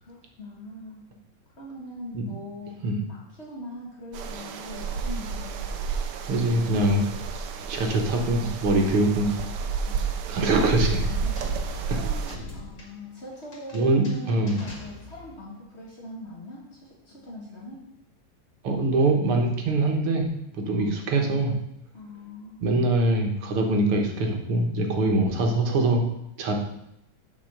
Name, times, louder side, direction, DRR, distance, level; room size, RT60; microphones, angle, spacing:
voice 1, 0.0-1.1 1.6-5.7 8.8-9.1 9.9-10.2 11.0-17.8 20.7-21.0 21.9-22.9, left 1 dB, 30° left, -4 dB, 2.3 m, -42 dB
sound 1, 4.1-12.4, right 5 dB, 65° right, 1.2 m, -31 dB
voice 2, 6.3-7.0 7.7-9.3 10.3-11.0 13.7-14.6 18.6-20.3 20.5-21.5 22.6-26.0 26.4-26.5, right 2 dB, 85° right, 3 dB, 2.2 m, -23 dB
sound 2, 11.4-15.5, left 2 dB, 55° left, 3.0 m, -44 dB
7.2 x 5.6 x 6.6 m, 0.80 s
omnidirectional pair, 2.3 m